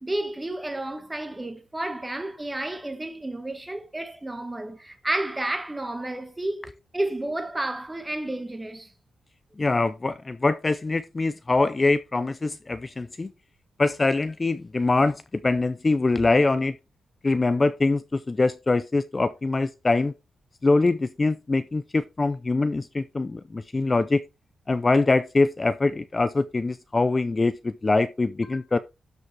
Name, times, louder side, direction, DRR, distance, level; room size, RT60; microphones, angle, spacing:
voice 1, 0.0-8.9, right 1 dB, 15° right, 1.5 m, -31 dB
voice 2, 9.6-13.3 13.8-16.8 17.2-20.1 20.6-24.2 24.7-28.8, left 3 dB, 25° left, 0.4 m, -23 dB
12.5 x 5.3 x 3.3 m
wide cardioid pair, 125°, 0 cm